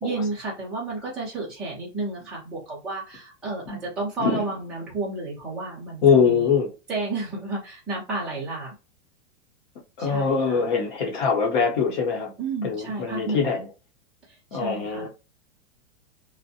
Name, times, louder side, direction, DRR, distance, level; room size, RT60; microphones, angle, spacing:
voice 1, 0.0-6.5 6.9-8.7 10.0-10.7 12.4-13.6 14.3-15.1, right 3 dB, 5° right, 0.4 m, -32 dB
voice 2, 6.0-6.7 10.0-12.3 12.6-13.6 14.5-15.1, left 6 dB, 40° left, 0.8 m, -22 dB
2.5 x 2.1 x 2.7 m
supercardioid pair, 170°, 37 cm